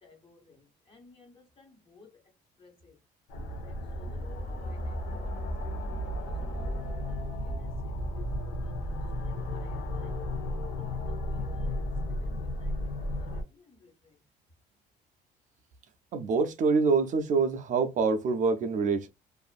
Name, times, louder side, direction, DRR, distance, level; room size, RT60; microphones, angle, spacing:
voice 1, 0.0-0.4 0.9-2.1 2.6-2.9 3.6-7.6 8.1-8.2 8.6-9.0 9.5-10.1 10.8-11.8 12.2-13.3 13.8-13.9, left 3 dB, 30° left, 1.3 m, -56 dB
sound 1, 3.3-13.4, left 1 dB, 75° left, 0.8 m, -34 dB
voice 2, 16.1-19.1, right 4 dB, 50° right, 0.4 m, -25 dB
2.5 x 2.5 x 2.3 m
cardioid pair, 110°, 17 cm